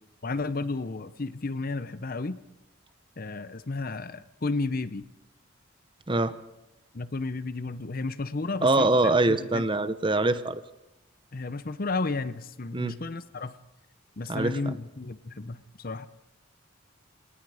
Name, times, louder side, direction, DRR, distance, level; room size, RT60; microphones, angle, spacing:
voice 1, 0.2-2.4 3.2-5.0 6.9-9.6 11.3-13.6 14.2-16.1, left 3 dB, 45° left, 15 dB, 0.8 m, -32 dB
voice 2, 8.6-10.6 12.7-13.0 14.3-14.7, right 2 dB, 25° right, 13 dB, 0.8 m, -24 dB
29.0 x 18.5 x 5.0 m, 0.95 s
head